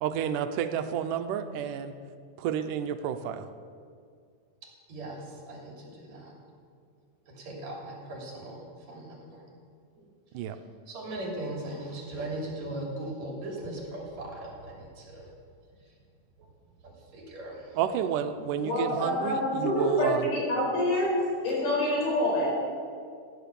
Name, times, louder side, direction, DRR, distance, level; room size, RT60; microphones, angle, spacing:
voice 1, 0.0-1.9 2.4-3.5 10.3-10.6 17.8-20.3, right 8 dB, 85° right, 9 dB, 2.3 m, -30 dB
voice 2, 4.9-6.4 7.3-9.4 10.9-15.3 15.9-16.0 16.4-16.5 16.8-17.8, right 1 dB, 55° right, -1 dB, 4.2 m, -39 dB
voice 3, 18.6-21.1 21.4-22.5, left 1 dB, 80° left, -4 dB, 6.2 m, -27 dB
16.0 x 10.0 x 6.9 m, 2.2 s
omnidirectional pair, 3.7 m